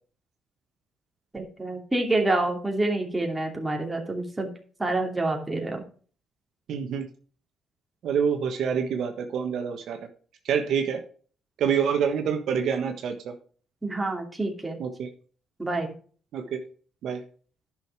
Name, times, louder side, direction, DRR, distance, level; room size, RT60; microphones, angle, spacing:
voice 1, 1.3-4.5 4.8-5.8 13.8-14.8 15.6-15.9, right 2 dB, 15° right, 1 dB, 2.7 m, -27 dB
voice 2, 6.7-7.1 8.0-10.0 10.4-11.0 11.6-13.3 14.8-15.1 16.3-16.6 17.0-17.2, right 7 dB, 75° right, 5 dB, 1.2 m, -26 dB
10.5 x 6.4 x 4.6 m, 0.43 s
cardioid pair, 90°, 0 cm